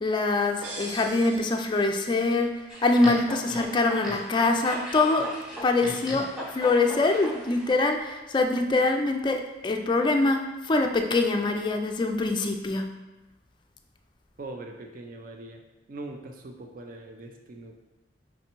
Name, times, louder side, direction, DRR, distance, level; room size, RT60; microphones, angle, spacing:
voice 1, 0.0-2.5 2.8-5.3 5.6-12.9, left 3 dB, 25° left, 4 dB, 0.3 m, -24 dB
sound 1, 0.6-2.4, right 2 dB, 85° right, 0.8 m, -41 dB
sound 2, 2.7-7.7, equal, ahead, 0.8 m, -37 dB
voice 2, 14.4-15.6 15.9-17.7, right 2 dB, 50° right, 3 dB, 0.5 m, -41 dB
5.5 x 3.2 x 2.9 m, 1.1 s
head